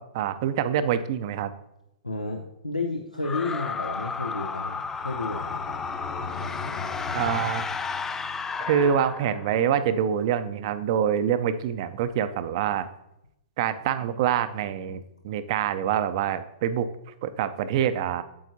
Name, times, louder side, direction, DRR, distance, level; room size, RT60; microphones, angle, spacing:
voice 1, 0.0-1.5 7.1-7.6 8.6-12.9 13.6-16.9 17.2-18.2, right 9 dB, 45° right, 12 dB, 0.5 m, -26 dB
voice 2, 2.0-5.8, left 3 dB, 90° left, 2 dB, 0.7 m, -32 dB
sound 1, 3.2-9.6, left 5 dB, 10° left, 0.3 m, -33 dB
sound 2, 4.1-8.6, left 5 dB, 30° left, 0.9 m, -39 dB
8.6 x 7.9 x 2.7 m, 0.86 s
figure-of-eight pair, 110°, 4 cm